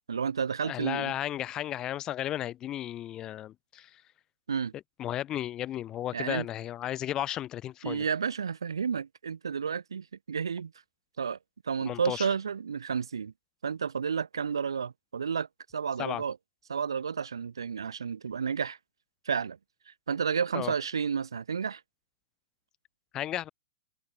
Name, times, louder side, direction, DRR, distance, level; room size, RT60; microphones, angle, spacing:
voice 1, 0.1-1.1 4.5-4.7 6.1-6.5 7.8-10.7 11.2-11.4 11.6-13.3 13.6-15.5 15.7-16.4 16.7-18.8 19.3-19.6 19.9-21.8, right 6 dB, 80° right, 0.5 m, -31 dB
voice 2, 0.6-4.0 5.0-8.0 11.9-12.3 16.0-16.2 20.5-20.7 23.1-23.5, left 12 dB, 25° left, 0.5 m, -34 dB
hypercardioid pair, 115°, 2 cm